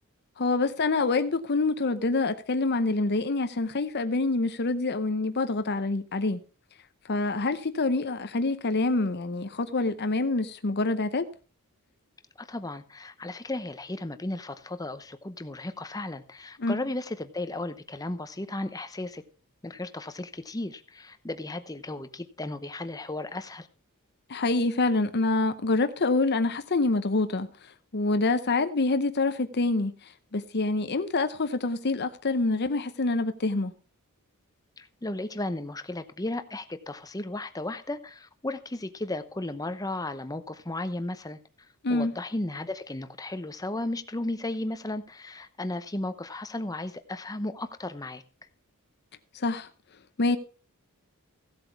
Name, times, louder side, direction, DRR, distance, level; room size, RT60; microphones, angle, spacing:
voice 1, 0.4-6.4 7.1-11.2 16.6-16.8 24.3-27.5 27.9-29.9 30.3-33.7 41.8-42.1 49.3-49.7 50.2-50.4, left 3 dB, 50° left, 0.8 m, -26 dB
voice 2, 12.4-19.2 19.6-23.7 34.8-41.4 41.9-48.2, left 2 dB, 15° left, 0.8 m, -35 dB
16.0 x 7.9 x 4.6 m
head